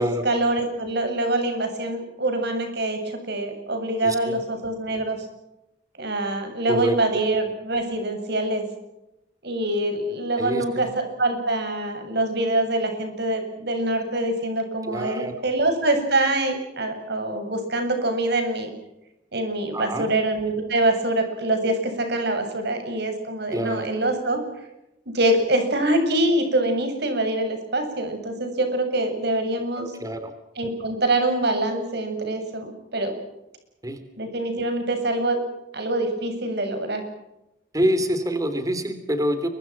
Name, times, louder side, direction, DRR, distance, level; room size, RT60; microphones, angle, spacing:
voice 1, 0.0-5.3 6.0-8.6 9.4-18.7 19.3-24.4 25.1-29.9 30.6-33.1 34.2-35.4 35.7-37.0, right 2 dB, 65° right, 6 dB, 7.6 m, -25 dB
voice 2, 4.0-4.4 6.7-7.2 10.4-10.9 14.8-15.3 19.7-20.1 23.5-23.9 29.8-30.3 33.8-34.0 37.7-39.5, equal, 20° right, 9 dB, 3.2 m, -26 dB
28.5 x 24.0 x 6.1 m, 0.90 s
head